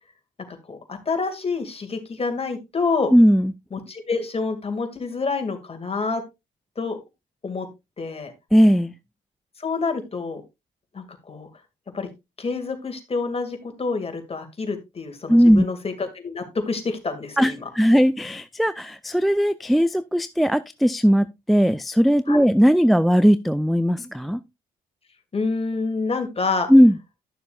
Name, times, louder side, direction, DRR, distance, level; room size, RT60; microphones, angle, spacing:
voice 1, 0.5-3.1 3.7-6.2 6.8-7.0 7.4-7.7 8.0-8.3 9.6-10.4 10.9-11.5 11.9-12.1 12.4-17.6 22.3-22.4 25.3-26.7, left 4 dB, 30° left, 2.1 m, -27 dB
voice 2, 3.1-3.5 8.5-8.9 15.3-15.6 17.4-24.4 26.7-26.9, equal, ahead, 0.3 m, -18 dB
12.0 x 6.7 x 2.3 m
supercardioid pair, 60°, 18 cm